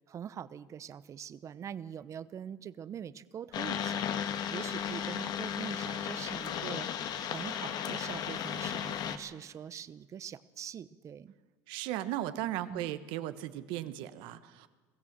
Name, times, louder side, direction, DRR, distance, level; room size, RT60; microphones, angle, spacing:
voice 1, 0.1-4.1 4.5-11.3 12.7-12.9, right 8 dB, 40° right, 16 dB, 0.8 m, -43 dB
sound 1, 3.5-9.2, left 9 dB, 55° left, 1.4 m, -35 dB
voice 2, 11.7-14.7, right 13 dB, 75° right, 12 dB, 1.2 m, -36 dB
22.5 x 15.5 x 7.4 m, 1.4 s
supercardioid pair, 115°, 8 cm